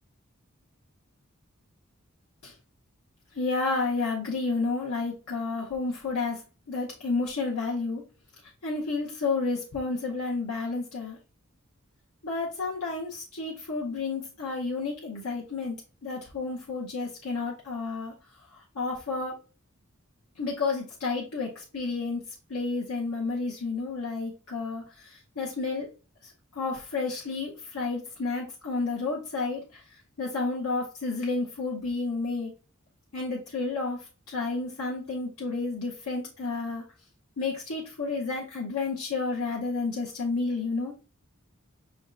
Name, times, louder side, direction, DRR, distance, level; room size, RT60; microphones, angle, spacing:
voice 1, 3.4-6.4 6.7-8.0 8.6-11.2 12.2-15.8 16.0-18.1 18.8-19.3 20.4-22.2 22.5-24.8 25.4-25.9 26.6-29.6 30.2-32.5 33.1-34.0 34.3-36.8 37.4-40.9, left 3 dB, 90° left, -3 dB, 0.8 m, -31 dB
5.4 x 3.5 x 2.4 m, 0.34 s
head